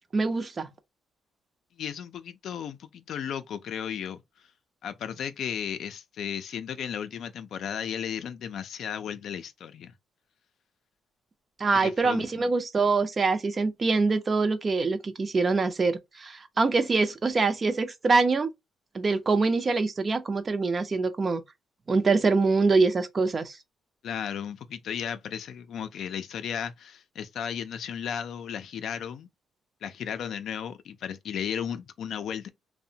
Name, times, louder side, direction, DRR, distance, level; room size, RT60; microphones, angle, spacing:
voice 1, 0.1-0.7 11.6-18.5 18.9-21.4 21.9-23.6, right 4 dB, 35° right, 0.5 m, -24 dB
voice 2, 1.8-4.2 4.8-9.9 11.8-12.4 24.0-29.3 29.8-32.5, left 8 dB, 70° left, 0.3 m, -35 dB
2.7 x 2.1 x 2.7 m
cardioid pair, 90°, 0 cm